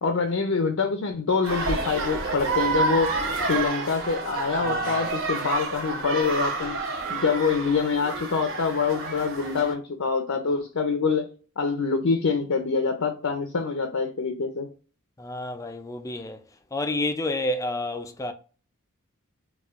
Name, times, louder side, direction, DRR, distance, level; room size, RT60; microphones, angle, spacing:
voice 1, 0.0-3.1 3.5-6.8 7.1-11.3 11.6-14.7, left 5 dB, 70° left, 0.5 m, -25 dB
sound 1, 1.4-9.7, right 3 dB, 60° right, 0.8 m, -29 dB
voice 2, 4.6-5.0 15.2-16.4 16.7-18.3, left 1 dB, 15° left, 0.3 m, -30 dB
4.2 x 2.3 x 2.4 m
head